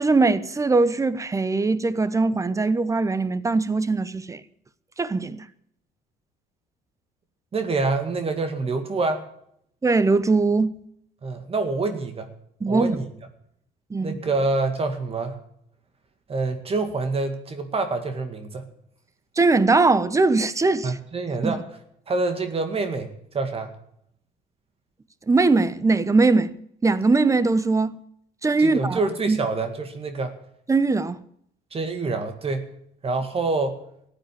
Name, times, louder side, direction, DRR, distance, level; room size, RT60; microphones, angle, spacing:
voice 1, 0.0-4.4 5.0-5.4 9.8-10.7 12.6-13.0 13.9-14.2 19.4-20.9 21.4-21.5 25.3-26.6 26.8-28.0 28.4-29.0 29.3-29.4 30.7-31.2, right 3 dB, 20° right, 0.9 m, -21 dB
voice 2, 7.5-9.2 11.2-12.3 12.7-13.0 14.0-15.4 16.3-18.7 20.8-21.6 22.1-23.7 28.6-30.4 31.7-32.7 33.0-33.8, right 3 dB, 35° right, 2.0 m, -26 dB
14.0 x 9.1 x 8.5 m
cardioid pair, 110°, 17 cm